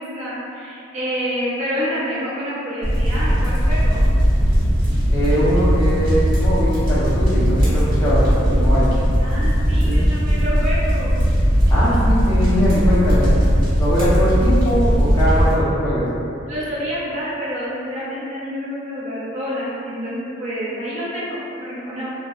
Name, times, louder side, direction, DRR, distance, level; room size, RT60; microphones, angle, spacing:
voice 1, 0.0-4.0 9.2-11.2 16.5-22.1, equal, 35° right, -9 dB, 0.4 m, -28 dB
sound 1, 2.8-15.5, equal, 50° right, 0.9 m, -18 dB
voice 2, 5.1-8.9 9.8-10.1 11.7-13.4 13.8-16.1, equal, 15° left, -12 dB, 0.6 m, -21 dB
2.6 x 2.1 x 2.3 m, 2.7 s
head